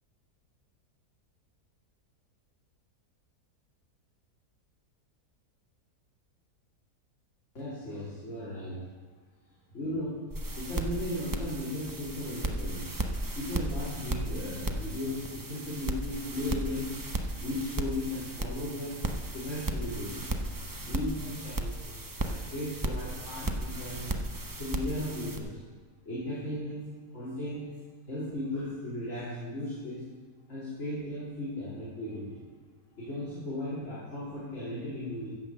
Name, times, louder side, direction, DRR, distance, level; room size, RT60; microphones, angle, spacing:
voice 1, 7.5-8.8 9.7-10.2 10.5-12.9 13.4-17.0 17.4-19.0 19.3-20.3 20.8-24.1 24.6-25.6 26.1-26.8 27.1-27.7 28.1-30.0 30.5-32.5 32.9-35.3, left 1 dB, 45° left, -10 dB, 3.6 m, -36 dB
sound 1, 10.3-25.4, right 1 dB, 30° right, 0.4 m, -35 dB
15.5 x 5.6 x 6.9 m, 1.4 s
omnidirectional pair, 1.7 m